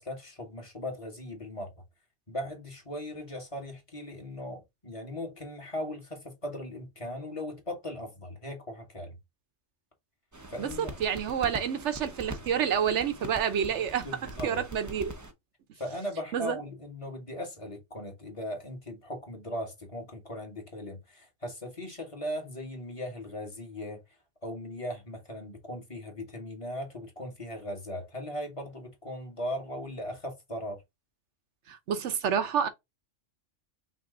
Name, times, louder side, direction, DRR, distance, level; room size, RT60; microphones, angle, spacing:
voice 1, 0.0-1.7 2.3-9.2 10.5-10.9 14.0-14.6 15.8-24.0 24.4-30.8, left 1 dB, 25° left, 1.2 m, -38 dB
sound 1, 10.3-15.3, right 1 dB, 20° right, 0.5 m, -43 dB
voice 2, 10.6-14.1 14.4-15.1 16.3-16.6 31.7-32.7, right 8 dB, 65° right, 1.1 m, -28 dB
5.9 x 2.1 x 3.7 m
omnidirectional pair, 1.3 m